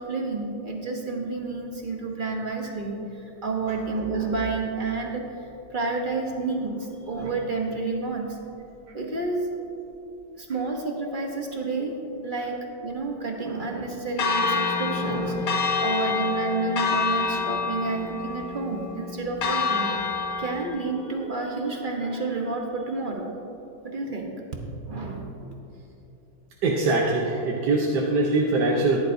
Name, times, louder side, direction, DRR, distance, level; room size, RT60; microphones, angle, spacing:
voice 1, 0.0-8.4 8.9-9.5 10.3-19.9 20.4-23.3 23.8-24.3 24.9-25.3, right 3 dB, 40° right, 1 dB, 0.8 m, -30 dB
Church bell, 14.2-20.7, left 4 dB, 60° left, 1.3 m, -27 dB
voice 2, 26.6-29.0, right 2 dB, 70° right, -2 dB, 1.4 m, -23 dB
14.5 x 11.0 x 2.6 m, 2.9 s
omnidirectional pair, 1.9 m